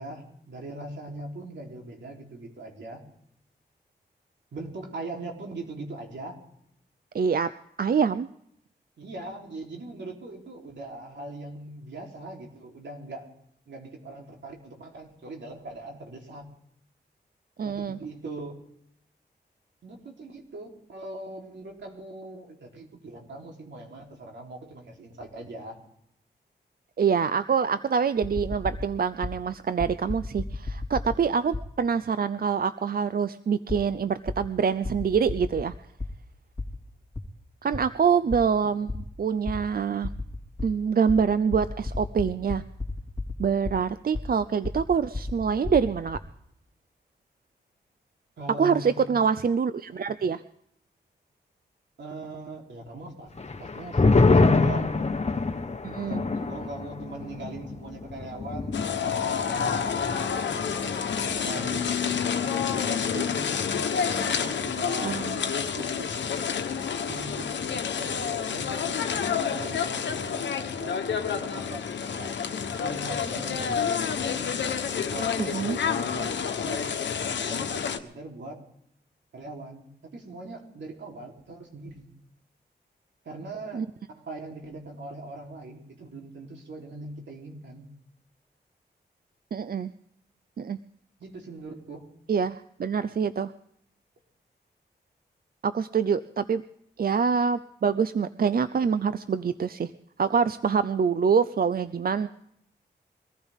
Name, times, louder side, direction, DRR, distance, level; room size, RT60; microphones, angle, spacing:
voice 1, 0.0-3.0 4.5-6.4 9.0-13.3 13.7-16.5 17.6-18.6 19.8-25.8 38.2-38.4 48.4-49.2 52.0-53.3 53.6-55.0 56.1-60.9 61.4-63.7 64.2-66.1 67.1-69.0 69.4-71.0 71.2-71.8 72.2-72.3 72.8-74.5 75.1-77.0 77.3-78.6 79.3-82.1 83.3-83.8 84.1-87.9 91.2-92.1, right 2 dB, 80° right, 0 dB, 3.6 m, -41 dB
voice 2, 7.1-7.5 7.8-8.3 17.6-18.0 27.0-35.7 37.6-40.1 40.6-42.6 43.4-46.2 48.6-50.4 55.8-56.2 65.0-65.4 75.4-75.8 83.7-83.9 89.5-89.9 90.6-90.8 92.3-93.5 95.6-96.6 97.0-99.9 100.2-102.3, right 6 dB, 55° right, 13 dB, 0.5 m, -25 dB
sound 1, 28.2-29.4 29.8-31.7 33.7-33.8 34.3-36.1 36.6-37.2 37.7-37.8 38.3-38.4 38.9-39.1 39.4-39.7 40.0-40.7 41.1-43.7 44.1-46.2, left 3 dB, 15° left, 3.0 m, -33 dB
sound 2, 53.4-60.3 60.6-60.7 61.1-61.6, left 3 dB, 35° left, 1.3 m, -25 dB
sound 3, 58.7-78.0, left 7 dB, 90° left, 1.1 m, -29 dB
23.0 x 15.0 x 3.6 m, 0.72 s
cardioid pair, 60°, 18 cm